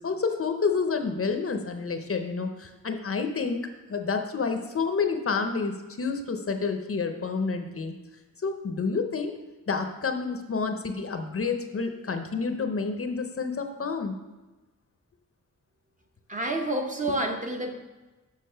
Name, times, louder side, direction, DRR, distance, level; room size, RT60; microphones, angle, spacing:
voice 1, 0.0-3.6 3.9-8.0 8.4-9.3 9.7-14.1, left 4 dB, 45° left, 6 dB, 0.7 m, -29 dB
voice 2, 16.3-17.8, right 1 dB, 25° right, 2 dB, 0.8 m, -29 dB
6.7 x 5.8 x 5.6 m, 1.1 s
wide cardioid pair, 170°, 32 cm